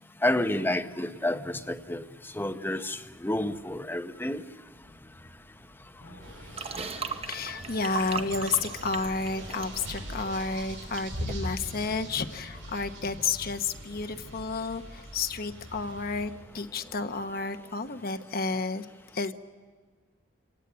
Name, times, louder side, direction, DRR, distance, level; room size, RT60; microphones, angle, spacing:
voice 1, 0.2-2.0 2.3-4.4, left 1 dB, 10° left, 8 dB, 0.8 m, -29 dB
Thunder / Rain, 4.7-17.6, equal, 70° left, 6.1 m, -51 dB
sound 1, 6.2-16.2, right 1 dB, 65° right, 7.3 m, -42 dB
sound 2, 6.6-11.0 11.3-11.5, right 5 dB, 30° right, 1.0 m, -38 dB
voice 2, 6.7-18.9 19.1-19.3, left 4 dB, 50° left, 8 dB, 1.0 m, -31 dB
27.5 x 18.0 x 8.7 m, 1.5 s
head